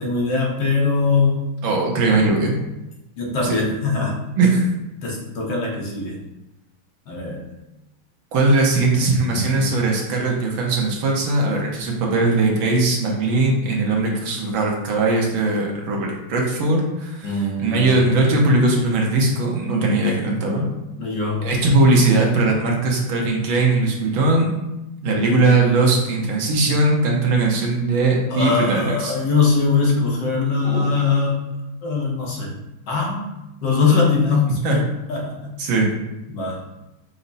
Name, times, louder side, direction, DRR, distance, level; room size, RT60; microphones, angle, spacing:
voice 1, 0.0-1.4 2.2-2.3 3.2-4.2 5.0-6.2 7.1-7.4 9.3-9.7 17.2-18.1 21.0-21.5 28.3-31.4 31.8-32.6 32.9-33.3 33.6-35.5 36.3-36.6, left 4 dB, 65° left, -2 dB, 1.5 m, -21 dB
voice 2, 1.6-2.5 3.4-3.6 4.4-4.6 8.3-20.6 21.4-24.5 25.0-29.1 30.6-30.9 34.6-34.8 35.6-35.9, right 2 dB, 75° right, -1 dB, 1.6 m, -19 dB
5.8 x 2.1 x 3.9 m, 0.97 s
omnidirectional pair, 2.2 m